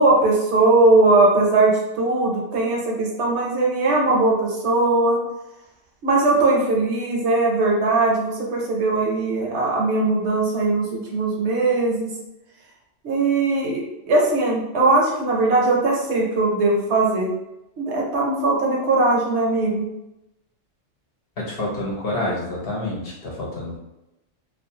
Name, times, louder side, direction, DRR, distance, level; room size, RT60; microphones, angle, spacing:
voice 1, 0.0-5.2 6.0-12.1 13.0-17.3 17.8-19.9, right 2 dB, 70° right, -2 dB, 0.9 m, -20 dB
voice 2, 21.4-23.8, left 1 dB, 60° left, -4 dB, 0.9 m, -28 dB
2.5 x 2.2 x 2.7 m, 0.91 s
omnidirectional pair, 1.2 m